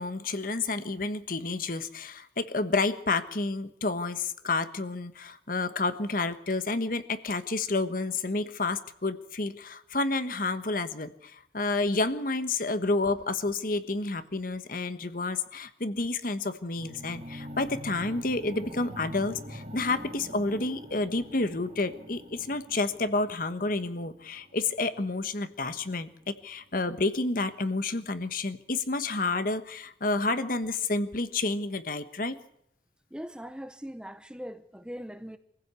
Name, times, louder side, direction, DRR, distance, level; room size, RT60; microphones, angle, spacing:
voice 1, 0.0-26.1 26.4-32.3, left 3 dB, 50° left, 1.3 m, -30 dB
sound 1, 16.8-26.7, equal, 35° right, 2.4 m, -45 dB
voice 2, 33.1-35.4, equal, 5° right, 0.9 m, -40 dB
24.5 x 15.5 x 8.3 m
head